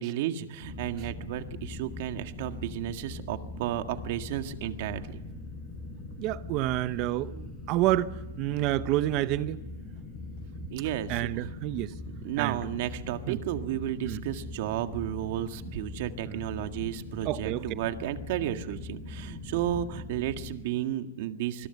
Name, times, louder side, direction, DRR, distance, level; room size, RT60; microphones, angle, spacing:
voice 1, 0.0-5.2 10.7-11.5 12.2-21.7, right 12 dB, 50° right, 1.8 m, -33 dB
sound 1, 0.6-20.5, left 2 dB, 10° left, 6.5 m, -41 dB
voice 2, 6.2-9.6 11.1-11.9 12.4-12.6 13.3-13.4 14.0-14.2 16.3-16.4 17.3-17.6, right 15 dB, 35° right, 0.8 m, -29 dB
26.0 x 21.0 x 7.0 m
supercardioid pair, 155°, 0 cm